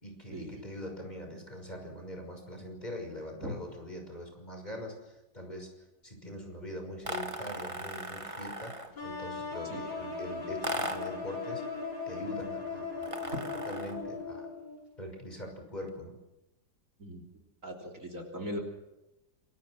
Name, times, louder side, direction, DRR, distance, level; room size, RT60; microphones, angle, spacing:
voice 1, 0.0-5.7 6.0-11.6 12.1-13.4 13.6-14.5 15.0-16.2, left 1 dB, 20° left, 3 dB, 6.2 m, -42 dB
sound 1, 7.0-9.0 10.6-11.2 13.0-14.1, right 1 dB, 20° right, 1.8 m, -38 dB
sound 2, 9.0-14.8, left 4 dB, 80° left, 7.7 m, -38 dB
voice 2, 17.6-18.6, equal, 45° right, 5 dB, 3.9 m, -38 dB
28.0 x 23.0 x 6.5 m, 0.97 s
omnidirectional pair, 2.0 m